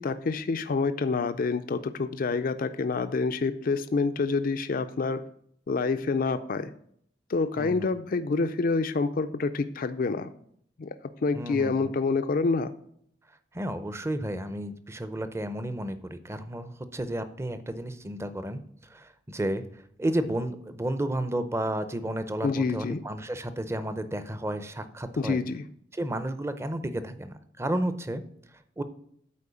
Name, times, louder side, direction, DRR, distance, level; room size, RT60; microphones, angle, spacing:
voice 1, 0.0-5.2 5.7-6.7 7.3-10.3 10.8-10.9 11.2-12.7 22.4-23.0 25.2-25.6, left 4 dB, 50° left, 10 dB, 0.4 m, -27 dB
voice 2, 7.6-7.9 11.3-11.9 13.5-25.4 25.9-28.2 28.8-28.9, right 1 dB, 15° right, 11 dB, 0.6 m, -32 dB
8.5 x 4.5 x 6.8 m, 0.67 s
head